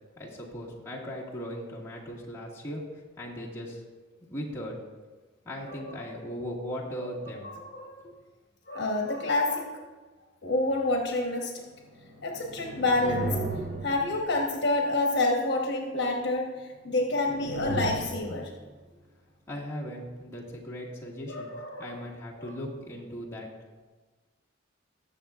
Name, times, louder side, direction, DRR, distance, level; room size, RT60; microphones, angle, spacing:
voice 1, 0.2-3.8 4.3-4.8 5.4-7.6 8.0-8.2 19.5-21.5 21.8-23.5, equal, 15° left, -6 dB, 1.9 m, -38 dB
voice 2, 5.7-6.0 7.0-7.1 7.4-8.0 8.7-9.7 10.4-11.6 12.2-13.3 13.8-18.5 21.3-22.0 22.4-22.6, left 2 dB, 60° left, 1 dB, 1.2 m, -28 dB
sound 1, 11.8-14.8 16.9-18.7, right 2 dB, 40° right, 1.1 m, -36 dB
19.5 x 7.0 x 2.5 m, 1.3 s
head